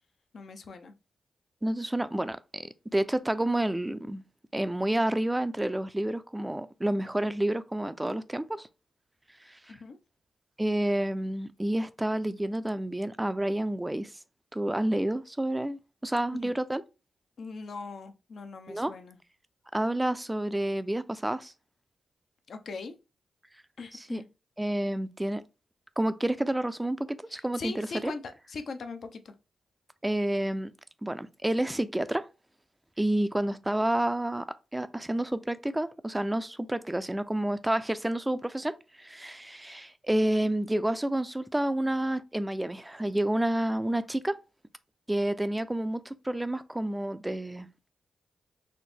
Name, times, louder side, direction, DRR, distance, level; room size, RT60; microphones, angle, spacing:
voice 1, 0.3-0.9 9.7-10.0 16.4-16.5 17.4-19.2 22.5-22.9 23.8-24.3 27.3-29.3, left 4 dB, 65° left, 0.5 m, -40 dB
voice 2, 1.6-4.2 4.5-8.7 9.5-9.8 10.6-14.1 14.5-16.8 18.7-18.9 19.7-21.5 23.9-24.2 24.6-25.4 26.0-28.1 30.0-30.7 31.0-32.3 33.0-34.5 34.7-44.4 45.1-47.7, right 1 dB, 15° right, 0.4 m, -29 dB
4.2 x 2.0 x 3.3 m
supercardioid pair, 50°, 0 cm